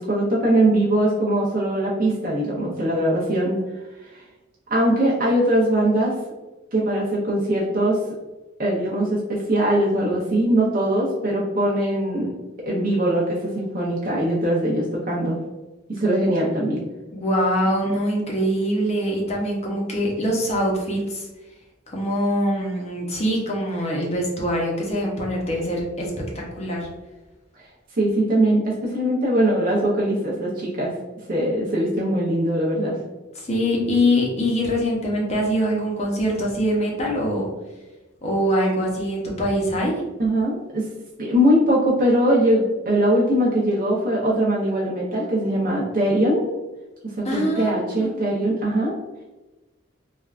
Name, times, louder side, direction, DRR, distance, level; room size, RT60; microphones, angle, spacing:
voice 1, 0.0-3.6 4.0-4.2 4.7-6.1 6.7-8.0 8.6-12.3 12.7-15.4 15.9-16.8 28.0-30.9 31.3-32.9 40.2-40.9 41.2-46.4 47.2-48.9, right 1 dB, 45° right, -5 dB, 0.6 m, -21 dB
voice 2, 17.1-21.3 21.9-26.9 33.3-37.5 38.2-40.0 47.2-48.1, equal, 30° left, -2 dB, 0.6 m, -23 dB
3.3 x 2.2 x 2.3 m, 1.1 s
head